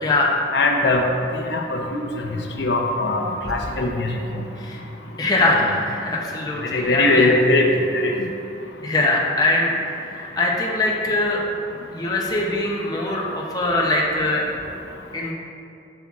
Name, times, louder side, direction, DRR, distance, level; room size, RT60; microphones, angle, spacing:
voice 1, 0.0-0.4 4.6-4.8 5.2-7.3 8.8-9.7 10.0-11.4 11.9-14.5 15.1-15.3, left 2 dB, 20° left, -3 dB, 0.5 m, -22 dB
voice 2, 0.5-1.0 1.5-2.0 2.6-4.1 6.6-8.1, left 2 dB, 70° left, 1 dB, 0.6 m, -20 dB
7.7 x 5.8 x 2.4 m, 2.7 s
head